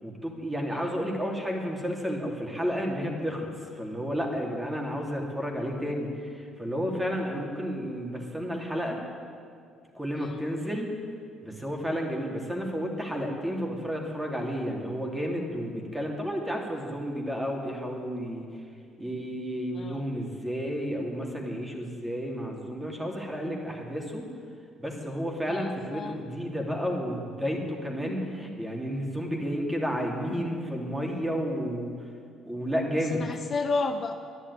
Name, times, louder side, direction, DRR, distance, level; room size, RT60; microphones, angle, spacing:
voice 1, 0.0-9.0 9.9-10.9 11.4-18.6 19.0-24.2 24.8-32.1 32.4-33.2, equal, 10° right, 0 dB, 2.9 m, -31 dB
voice 2, 19.7-20.1 25.5-26.3 33.0-34.1, left 3 dB, 45° left, 6 dB, 0.8 m, -33 dB
11.0 x 11.0 x 9.8 m, 2.3 s
cardioid pair, 90°, 0 cm